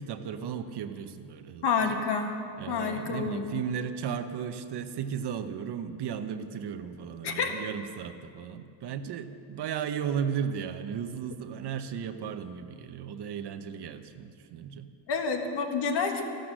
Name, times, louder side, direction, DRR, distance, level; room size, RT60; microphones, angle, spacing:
voice 1, 0.0-2.0 2.6-14.9, right 7 dB, 55° right, 9 dB, 0.9 m, -35 dB
voice 2, 1.6-2.3 2.7-3.6 7.2-7.5 15.1-16.2, left 5 dB, 55° left, 4 dB, 1.7 m, -29 dB
14.0 x 12.5 x 6.3 m, 2.5 s
cardioid pair, 130°, 50 cm